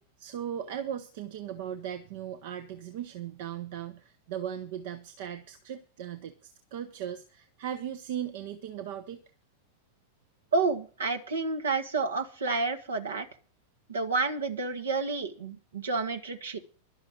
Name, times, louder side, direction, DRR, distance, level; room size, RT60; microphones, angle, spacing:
voice 1, 0.2-9.2, right 9 dB, 50° right, 8 dB, 1.0 m, -38 dB
voice 2, 10.5-13.3 13.9-16.6, right 4 dB, 70° right, 6 dB, 1.9 m, -30 dB
12.0 x 6.7 x 9.4 m, 0.37 s
figure-of-eight pair, 90°, 0 cm